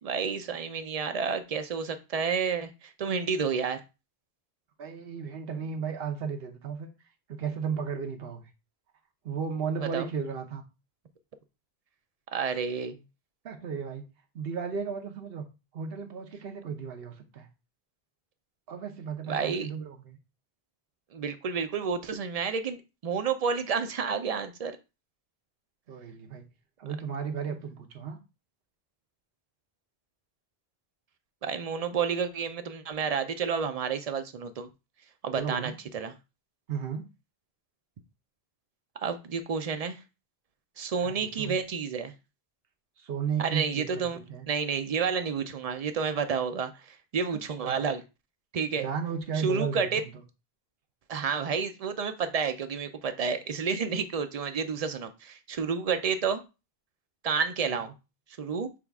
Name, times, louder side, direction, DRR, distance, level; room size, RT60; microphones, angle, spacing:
voice 1, 0.0-3.8 9.8-10.1 12.3-13.0 19.3-19.7 21.1-24.8 31.4-34.7 35.2-36.1 39.0-40.0 40.8-42.1 43.4-44.2 44.5-48.0 48.5-48.9 49.3-50.0 51.1-56.4 57.2-57.9 58.4-58.7, right 6 dB, 50° right, 0.5 m, -30 dB
voice 2, 4.8-6.9 7.3-8.5 9.2-10.6 13.4-14.0 14.3-15.5 15.7-17.5 18.7-20.2 25.9-26.4 26.8-28.2 35.3-35.8 36.7-37.0 41.0-41.6 43.0-44.4 47.6-47.8 48.7-50.1 57.7-57.8, right 6 dB, 70° right, 1.0 m, -34 dB
6.1 x 2.4 x 3.4 m
omnidirectional pair, 1.1 m